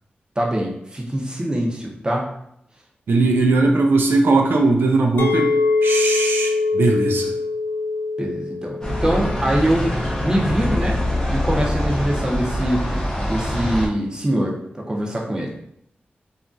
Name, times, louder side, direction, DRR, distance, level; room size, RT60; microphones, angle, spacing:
voice 1, 0.4-2.3 8.2-9.9 10.2-11.0 11.3-12.8 13.3-15.5, right 1 dB, 20° right, -2 dB, 0.6 m, -23 dB
voice 2, 3.1-5.5 5.8-7.3, right 3 dB, 80° right, 2 dB, 0.3 m, -18 dB
Chink clink, 5.2-10.4, left 3 dB, 90° left, 0.4 m, -23 dB
sound 1, 8.8-13.9, left 1 dB, 20° left, 0.6 m, -24 dB
2.9 x 2.3 x 2.5 m, 0.73 s
wide cardioid pair, 100°, 4 cm